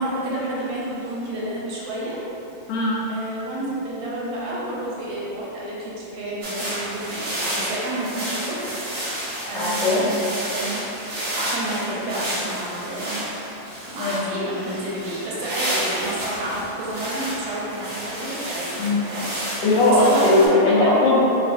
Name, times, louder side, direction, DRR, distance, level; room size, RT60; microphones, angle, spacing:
voice 1, 0.0-2.2 3.1-8.7 9.4-10.9 11.3-13.2 13.9-19.6 20.0-20.9, right 1 dB, 75° right, -6 dB, 1.5 m, -30 dB
sound 1, 6.4-20.5, right 1 dB, 50° right, 1.1 m, -31 dB
voice 2, 9.5-10.0 14.0-14.2 18.8-19.0 19.6-21.2, left 2 dB, 75° left, -5 dB, 1.3 m, -18 dB
3.2 x 2.8 x 3.4 m, 3.0 s
omnidirectional pair, 2.1 m